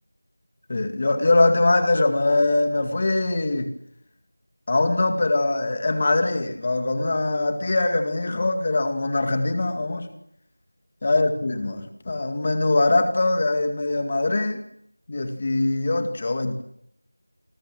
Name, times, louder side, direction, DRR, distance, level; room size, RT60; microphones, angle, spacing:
voice 1, 0.7-3.7 4.7-10.1 11.0-14.6 15.1-16.6, left 2 dB, 20° left, 7 dB, 2.2 m, -22 dB
29.0 x 25.0 x 6.2 m, 0.72 s
figure-of-eight pair, 180°, 0 cm